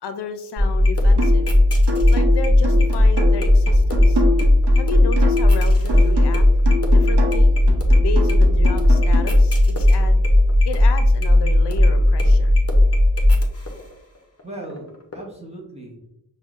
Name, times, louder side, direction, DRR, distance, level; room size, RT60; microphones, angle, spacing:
voice 1, 0.0-1.5 2.1-4.2 4.8-6.4 6.9-7.5 8.0-10.2 10.6-12.5, left 5 dB, 75° left, 8 dB, 0.5 m, -32 dB
sound 1, 0.6-13.9 14.4-14.8 15.1-15.2, left 1 dB, 35° left, 0.7 m, -16 dB
sound 2, 1.2-1.5 1.9-5.6 5.9-9.2, left 2 dB, 75° right, 0.8 m, -26 dB
voice 2, 14.4-16.1, right 1 dB, 15° right, -4 dB, 0.7 m, -37 dB
5.5 x 2.1 x 2.4 m, 0.81 s
wide cardioid pair, 100°, 41 cm